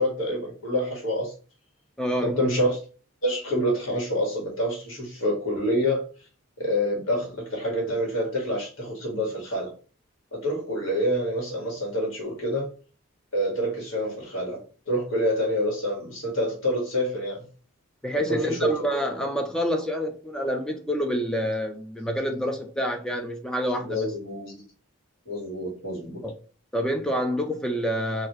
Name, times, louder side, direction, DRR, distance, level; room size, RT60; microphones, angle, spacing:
voice 1, 0.0-1.3 2.2-2.8 3.2-6.0 6.6-9.7 10.3-12.7 13.3-14.6 14.9-17.5 18.3-18.8 23.9-24.6 25.3-26.2, equal, 65° left, 1.8 m, -27 dB
voice 2, 2.0-2.4 18.0-24.1 26.2-26.3 26.7-28.3, equal, 5° left, 0.4 m, -27 dB
4.1 x 2.6 x 3.1 m
head